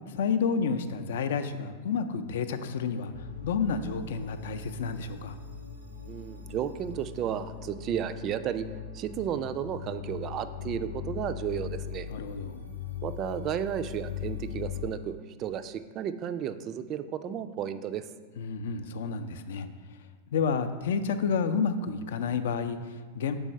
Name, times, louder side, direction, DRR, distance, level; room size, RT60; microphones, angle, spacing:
voice 1, 0.1-5.4 12.1-12.6 18.4-19.7 20.3-23.4, left 5 dB, 60° left, 10 dB, 0.4 m, -30 dB
sound 1, 3.1-14.9, left 8 dB, 90° right, 0.8 m, -40 dB
voice 2, 6.1-8.7 8.9-12.1 13.0-18.1, right 9 dB, 35° right, 11 dB, 0.3 m, -33 dB
5.4 x 4.4 x 5.5 m, 1.4 s
figure-of-eight pair, 90°, 0 cm